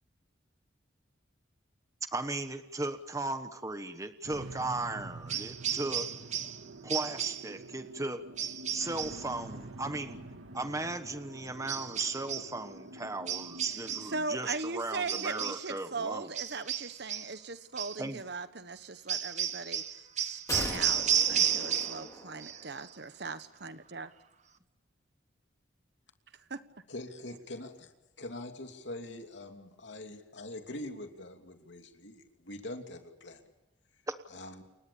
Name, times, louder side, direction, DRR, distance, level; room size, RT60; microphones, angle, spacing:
voice 1, 2.1-6.1 6.8-8.2 8.7-10.2 10.5-16.3 18.0-18.2, right 2 dB, 15° right, 9 dB, 1.2 m, -36 dB
sound 1, 4.2-14.2, right 2 dB, 90° right, 1.8 m, -47 dB
sound 2, 5.3-6.6 6.9-7.5 8.4-9.2 11.7-12.5 13.3-14.2 15.1-15.7 16.4-17.4 17.8-18.0 19.1-22.1 22.4-22.9, right 9 dB, 35° right, 1.0 m, -33 dB
voice 2, 13.7-19.8 20.2-24.1 26.5-26.6, right 3 dB, 55° right, 12 dB, 1.2 m, -39 dB
sound 3, 20.5-22.8 23.1-23.2, left 2 dB, 15° left, 4.2 m, -40 dB
voice 3, 26.9-27.9 28.2-33.4 34.3-34.6, left 1 dB, 65° left, 5 dB, 2.9 m, -43 dB
29.0 x 24.5 x 7.2 m, 1.0 s
head